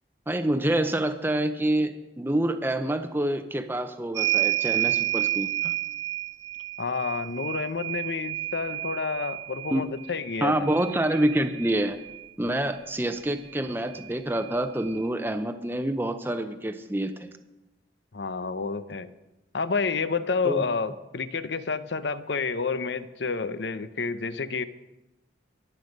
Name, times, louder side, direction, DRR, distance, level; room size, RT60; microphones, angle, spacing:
voice 1, 0.3-1.9 2.2-5.7 9.7-9.9 10.4-12.0 12.4-17.3 20.4-20.6, right 1 dB, 10° right, 8 dB, 0.7 m, -27 dB
sound 1, 4.1-12.3 13.5-13.6 13.9-15.0, right 13 dB, 80° right, 1.0 m, -30 dB
voice 2, 6.8-10.7 18.1-19.1 19.5-24.6, left 4 dB, 70° left, 13 dB, 0.8 m, -29 dB
23.0 x 8.1 x 5.3 m, 0.98 s
head